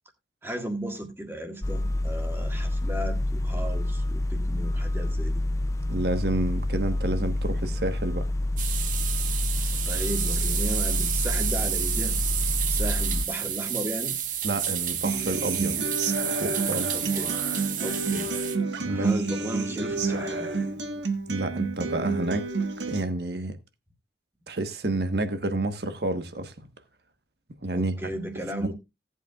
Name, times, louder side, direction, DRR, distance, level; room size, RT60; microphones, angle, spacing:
voice 1, 0.4-5.4 9.8-12.2 12.7-14.2 16.9-17.4 17.8-18.3 18.9-20.5 27.7-28.7, right 1 dB, 15° right, 1.8 m, -35 dB
sound 1, 1.6-13.3, left 1 dB, 15° left, 0.4 m, -28 dB
voice 2, 5.9-8.3 14.4-15.9 16.3-17.0 18.8-19.1 21.3-22.5 22.9-23.6 24.5-26.7 27.6-28.0 28.3-28.7, right 2 dB, 65° right, 1.2 m, -29 dB
sound 2, 8.6-18.6, right 9 dB, 45° right, 1.2 m, -30 dB
Human voice / Acoustic guitar, 15.0-23.0, right 3 dB, 85° right, 1.5 m, -30 dB
17.0 x 8.2 x 2.4 m
head